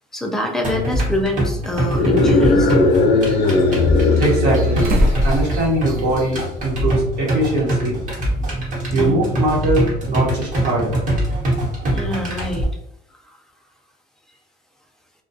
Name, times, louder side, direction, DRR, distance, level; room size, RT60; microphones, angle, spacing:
voice 1, 0.1-2.7 8.9-9.1 11.9-12.7, left 1 dB, 5° left, 1 dB, 0.5 m, -25 dB
sound 1, 0.6-12.6, right 1 dB, 50° right, 1.0 m, -23 dB
sound 2, 1.1-1.2 2.1-3.0 3.9-6.3 6.6-6.7 8.3-8.4, equal, 65° right, 0.6 m, -23 dB
sound 3, 1.8-5.5, left 3 dB, 75° left, 0.6 m, -17 dB
voice 2, 4.2-4.9 5.2-8.0 8.9-11.0, right 1 dB, 80° right, -4 dB, 1.1 m, -21 dB
2.3 x 2.2 x 2.6 m, 0.72 s
cardioid pair, 110°, 17 cm